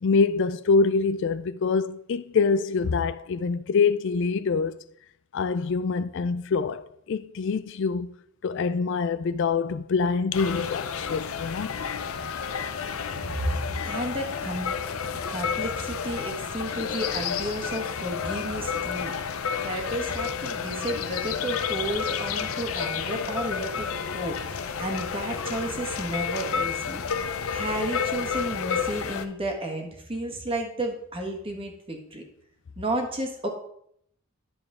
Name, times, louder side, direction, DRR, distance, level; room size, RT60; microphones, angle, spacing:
voice 1, 0.0-4.8 5.3-8.1 8.4-11.7, left 4 dB, 60° left, 0.4 m, -25 dB
sound 1, 10.3-29.3, left 6 dB, 85° left, 0.7 m, -31 dB
voice 2, 13.3-14.7 15.1-27.0 27.5-32.2 32.8-33.5, right 1 dB, 25° right, 1.5 m, -32 dB
10.5 x 6.9 x 3.7 m
head